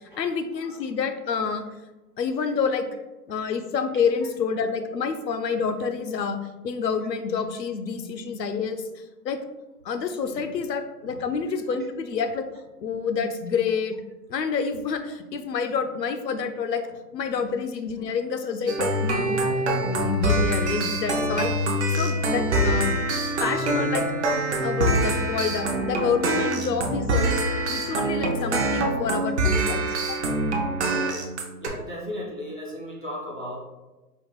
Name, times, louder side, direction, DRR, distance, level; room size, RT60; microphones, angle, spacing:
voice 1, 0.2-1.6 2.2-2.8 3.3-6.4 6.6-9.4 9.8-12.4 12.8-14.0 14.3-16.8 17.1-19.5 19.8-21.5 21.9-23.0 23.4-24.0 24.6-27.4 27.7-29.9, left 5 dB, 85° left, 8 dB, 0.7 m, -28 dB
sound 1, 18.7-31.7, right 1 dB, 45° right, 0.6 m, -25 dB
voice 2, 31.6-33.6, left 1 dB, 35° left, -3 dB, 0.4 m, -36 dB
5.0 x 2.3 x 3.2 m, 1.1 s
hypercardioid pair, 150°, 49 cm